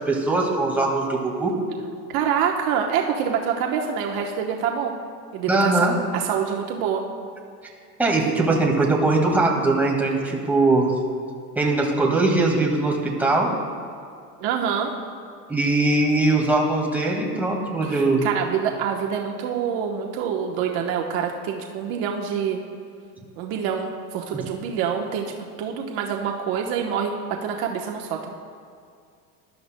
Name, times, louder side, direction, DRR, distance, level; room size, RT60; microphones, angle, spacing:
voice 1, 0.0-1.5 5.5-5.9 8.0-10.9 11.6-13.6 15.5-18.3, right 2 dB, 5° right, -2 dB, 1.8 m, -21 dB
voice 2, 2.1-5.0 5.3-5.9 6.1-7.0 14.4-14.9 17.8-22.6 23.4-25.3 25.6-27.1 27.4-28.2, right 7 dB, 50° right, 1 dB, 1.1 m, -26 dB
19.0 x 12.0 x 2.2 m, 2.3 s
supercardioid pair, 125°, 47 cm